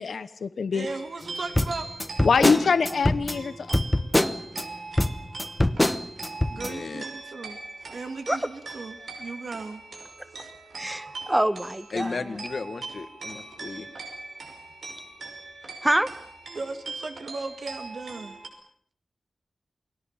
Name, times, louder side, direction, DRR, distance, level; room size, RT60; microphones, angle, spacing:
voice 1, 0.0-0.9 2.2-3.7, left 5 dB, 85° left, 13 dB, 1.1 m, -23 dB
voice 2, 0.7-1.9 6.5-7.6 7.8-9.8 16.5-18.4, right 3 dB, 70° right, 7 dB, 2.2 m, -36 dB
sound 1, 0.8-18.5, right 3 dB, 90° right, 5.8 m, -41 dB
sound 2, 1.5-4.6 5.0-6.7, left 1 dB, 15° left, 1.2 m, -24 dB
voice 3, 6.5-7.0 11.9-13.9, left 4 dB, 65° left, 10 dB, 2.0 m, -34 dB
voice 4, 10.8-12.2 15.8-16.1, right 1 dB, 15° right, 13 dB, 1.5 m, -25 dB
29.0 x 20.5 x 7.3 m, 0.64 s
wide cardioid pair, 100°, 0 cm